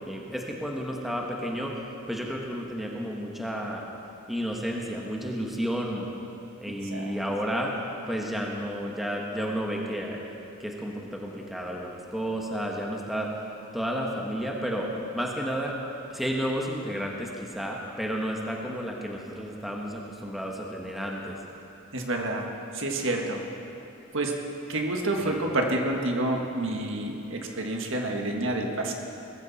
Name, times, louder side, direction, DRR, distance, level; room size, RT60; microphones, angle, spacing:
voice 1, 0.1-1.8 2.1-3.8 4.3-6.1 6.6-7.7 8.1-10.2 10.6-13.3 13.7-15.7 16.1-21.4 25.2-25.4, equal, ahead, -1 dB, 1.3 m, -31 dB
voice 2, 6.8-7.4 21.9-22.5 22.7-23.4 24.1-24.3 24.7-28.9, right 2 dB, 60° right, 2 dB, 1.7 m, -28 dB
20.0 x 14.5 x 4.2 m, 2.8 s
head